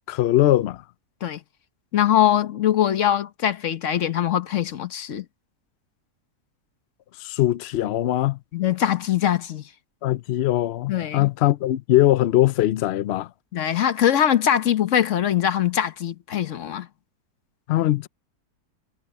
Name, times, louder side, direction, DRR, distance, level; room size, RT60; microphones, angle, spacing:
voice 1, 0.1-0.8 7.2-8.4 10.0-13.3 17.7-18.1, left 14 dB, 75° left, 0.6 m, -21 dB
voice 2, 1.9-5.2 8.5-9.7 10.9-11.3 13.5-16.9, left 10 dB, 55° left, 1.2 m, -22 dB
omnidirectional pair, 1.6 m